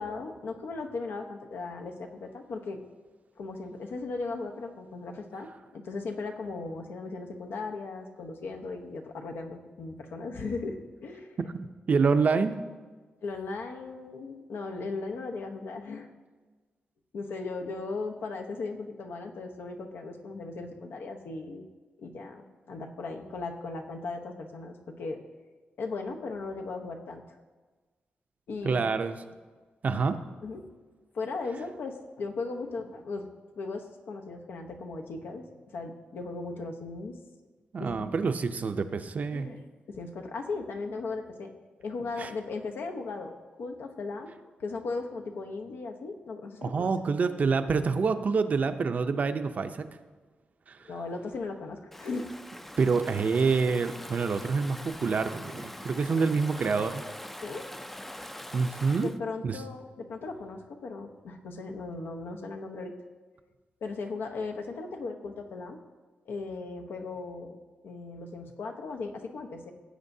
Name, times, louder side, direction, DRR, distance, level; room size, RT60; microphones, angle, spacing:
voice 1, 0.0-2.8 3.4-11.4 13.2-16.1 17.1-21.7 22.0-25.2 25.8-27.2 28.5-28.8 30.4-30.6 31.1-33.2 33.6-37.2 37.8-38.1 39.3-41.5 41.8-43.3 43.6-44.3 44.6-47.0 50.9-52.3 57.4-57.6 59.0-62.9 63.8-65.8 66.3-67.6 67.8-69.7, left 3 dB, 90° left, 3 dB, 1.0 m, -37 dB
voice 2, 11.5-12.5 28.6-29.2 29.8-30.2 37.7-39.5 42.2-42.3 46.6-49.8 50.7-50.8 52.8-57.0 58.5-59.1 59.4-59.6, right 5 dB, 45° right, 9 dB, 0.5 m, -27 dB
Stream / Ocean, 51.9-59.2, left 1 dB, 5° left, 0.4 m, -43 dB
16.5 x 8.1 x 2.7 m, 1.3 s
wide cardioid pair, 135°, 4 cm